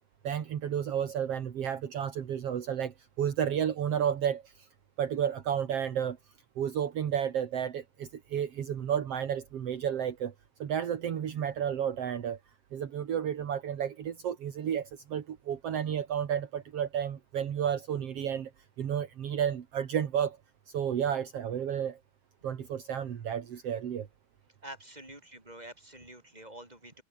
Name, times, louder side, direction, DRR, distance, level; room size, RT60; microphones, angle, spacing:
voice 1, 0.2-4.5 5.0-6.2 6.6-10.3 10.6-12.4 12.7-18.5 18.8-20.4 20.7-22.0 22.4-24.1, right 9 dB, 55° right, 1.8 m, -32 dB
voice 2, 24.6-27.0, right 1 dB, 10° right, 7.8 m, -47 dB
omnidirectional pair, 5.1 m